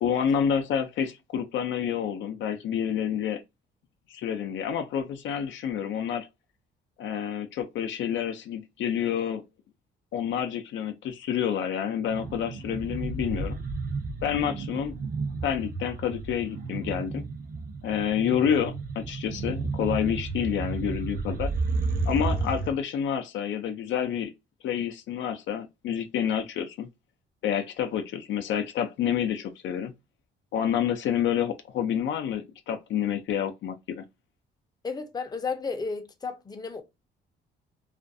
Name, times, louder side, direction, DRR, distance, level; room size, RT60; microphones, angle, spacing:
voice 1, 0.0-3.4 4.1-6.3 7.0-9.4 10.1-13.6 14.2-14.9 15.4-17.3 17.8-21.5 22.1-24.3 24.6-26.9 27.4-29.9 30.5-34.0, left 8 dB, 70° left, 0.4 m, -28 dB
sound 1, 12.1-22.7, right 3 dB, 45° right, 0.6 m, -32 dB
voice 2, 34.8-36.8, left 4 dB, 20° left, 0.5 m, -33 dB
2.4 x 2.2 x 2.5 m
cardioid pair, 90°, 20 cm